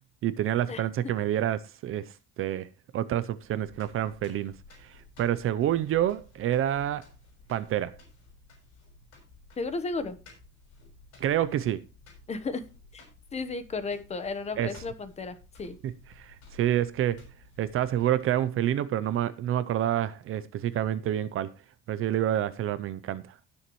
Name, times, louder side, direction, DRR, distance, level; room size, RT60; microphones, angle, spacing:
voice 1, 0.2-2.1 2.4-2.7 2.9-4.5 4.8-7.0 7.5-8.0 11.2-11.8 14.6-14.7 15.8-17.2 17.6-21.5 21.9-23.2, right 11 dB, 40° right, 0.6 m, -28 dB
sound 1, 3.3-18.4, left 2 dB, 55° left, 6.3 m, -54 dB
voice 2, 9.6-10.2 12.3-12.6 13.3-15.8, left 3 dB, 20° left, 1.0 m, -33 dB
17.5 x 7.1 x 3.0 m
cardioid pair, 170°, 32 cm